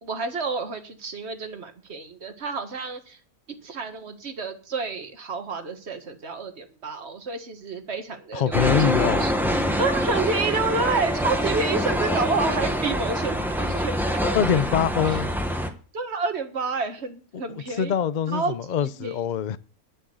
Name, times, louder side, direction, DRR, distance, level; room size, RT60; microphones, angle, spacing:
voice 1, 0.0-3.2 3.6-9.3 9.8-14.4 15.0-15.2 15.9-17.9 18.3-18.5 18.8-19.2, right 4 dB, 45° right, 1.7 m, -29 dB
voice 2, 8.3-9.3 14.2-15.3 17.5-19.6, left 8 dB, 55° left, 0.5 m, -24 dB
sound 1, 8.5-15.7, equal, ahead, 1.1 m, -25 dB
11.0 x 6.3 x 8.0 m
omnidirectional pair, 1.6 m